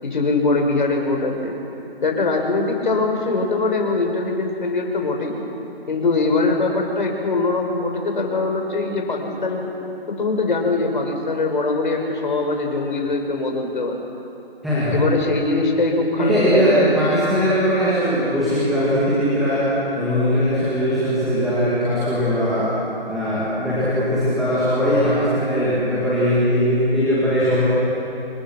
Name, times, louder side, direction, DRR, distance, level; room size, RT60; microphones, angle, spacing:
voice 1, 0.0-1.5 2.0-5.4 5.9-9.7 10.1-14.0 14.9-17.0, left 3 dB, 55° left, 2 dB, 5.2 m, -22 dB
voice 2, 14.6-15.0 16.2-19.7 20.0-22.7 23.1-27.6, equal, ahead, -12 dB, 2.4 m, -20 dB
27.5 x 25.0 x 6.2 m, 2.8 s
hypercardioid pair, 170°, 31 cm